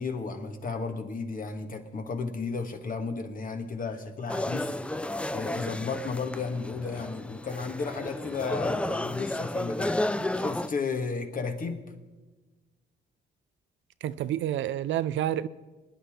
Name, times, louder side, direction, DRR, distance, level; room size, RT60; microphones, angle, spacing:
voice 1, 0.0-10.0 10.4-11.8, left 4 dB, 45° left, 1.6 m, -33 dB
sound 1, 4.3-10.7, left 1 dB, 5° left, 0.4 m, -32 dB
voice 2, 14.0-15.5, right 11 dB, 70° right, 0.5 m, -29 dB
24.5 x 10.0 x 3.7 m
cardioid pair, 90°, 20 cm